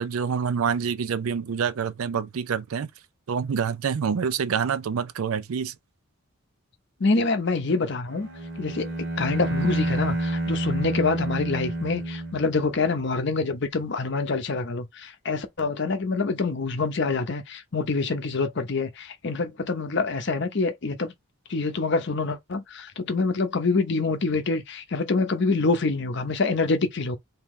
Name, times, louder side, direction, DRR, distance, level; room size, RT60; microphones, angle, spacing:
voice 1, 0.0-2.9 3.3-5.7, right 6 dB, 80° right, 0.4 m, -27 dB
voice 2, 7.0-8.3 8.6-21.1 21.5-27.2, left 3 dB, 55° left, 0.7 m, -26 dB
Bowed string instrument, 8.1-12.9, right 1 dB, 55° right, 1.1 m, -29 dB
3.1 x 2.8 x 3.6 m
head